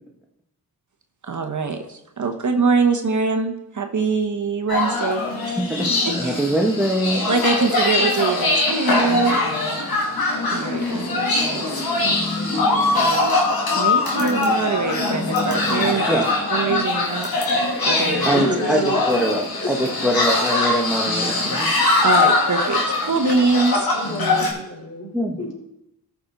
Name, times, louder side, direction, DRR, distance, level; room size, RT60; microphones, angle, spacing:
voice 1, 1.2-6.5 7.2-9.4 10.5-11.8 12.9-13.3 13.8-17.3 17.8-18.4 18.6-18.8 22.0-23.9, right 4 dB, 50° right, 6 dB, 1.2 m, -24 dB
sound 1, 4.7-24.5, left 2 dB, 65° left, 2.4 m, -22 dB
voice 2, 5.6-5.9 6.1-7.2 16.1-16.2 18.2-18.8 19.1-19.4 19.7-21.7 25.1-25.5, equal, 5° right, 0 dB, 1.3 m, -22 dB
voice 3, 18.3-19.0 19.6-19.9 23.9-25.5, equal, 40° left, -2 dB, 4.4 m, -28 dB
13.5 x 6.0 x 4.0 m, 0.85 s
cardioid pair, 55°, 38 cm